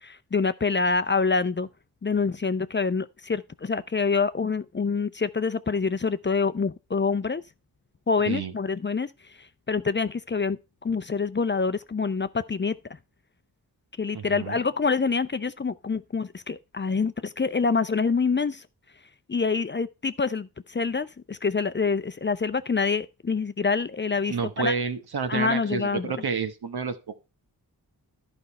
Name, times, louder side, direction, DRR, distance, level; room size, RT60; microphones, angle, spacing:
voice 1, 0.0-1.7 2.0-7.4 8.1-9.1 9.7-12.7 14.0-18.6 19.3-24.7 25.3-26.1, left 4 dB, 30° left, 0.6 m, -26 dB
voice 2, 14.1-14.6 24.3-27.0, right 5 dB, 70° right, 1.3 m, -29 dB
11.5 x 5.3 x 4.2 m
cardioid pair, 45°, 39 cm